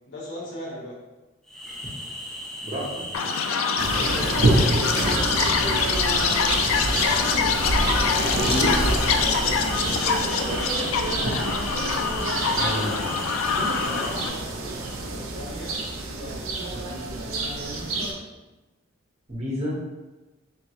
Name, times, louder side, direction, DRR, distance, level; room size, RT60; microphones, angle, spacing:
voice 1, 0.1-1.0 4.1-4.7 4.9-6.1 8.1-8.6 9.0-11.1 13.9-14.4 15.1-15.8 16.1-16.5, left 1 dB, 60° left, -5 dB, 1.1 m, -39 dB
sound 1, 1.5-14.1, equal, 5° left, 0.5 m, -35 dB
voice 2, 2.6-3.0 8.3-8.8 12.6-12.9 19.3-19.7, equal, 35° right, -5 dB, 1.1 m, -28 dB
Chirp tweet, 3.1-14.3, left 6 dB, 85° left, 0.4 m, -25 dB
sound 2, 3.8-18.1, right 2 dB, 80° right, 0.6 m, -27 dB
3.6 x 3.4 x 3.1 m, 1.1 s
head